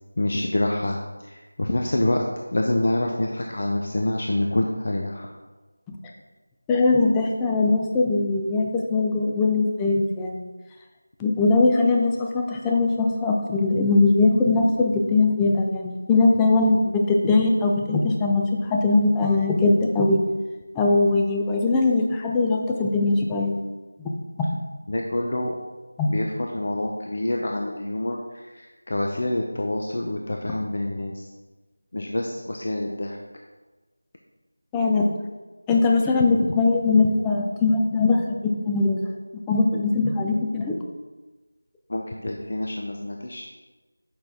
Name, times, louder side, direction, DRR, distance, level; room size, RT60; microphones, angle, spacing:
voice 1, 0.2-2.2 2.5-5.3 24.9-25.6 26.1-31.2 31.9-33.2 41.9-43.5, left 1 dB, 45° left, 1 dB, 0.7 m, -27 dB
voice 2, 6.7-10.5 11.2-20.2 20.7-23.5 26.0-26.1 34.7-35.1 35.7-39.0 39.5-40.8, left 3 dB, 5° left, 0 dB, 0.4 m, -21 dB
8.7 x 5.8 x 3.6 m, 1.2 s
figure-of-eight pair, 175°, 0 cm